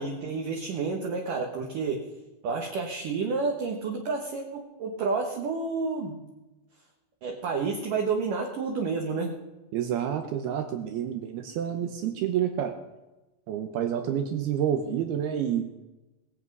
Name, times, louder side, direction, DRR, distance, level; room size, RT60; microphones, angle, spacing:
voice 1, 0.0-2.1 2.4-6.3 7.2-9.4, right 4 dB, 65° right, 1 dB, 2.2 m, -30 dB
voice 2, 9.7-12.8 13.5-15.7, right 9 dB, 80° right, 6 dB, 2.3 m, -29 dB
22.5 x 8.2 x 5.4 m, 1.1 s
omnidirectional pair, 5.7 m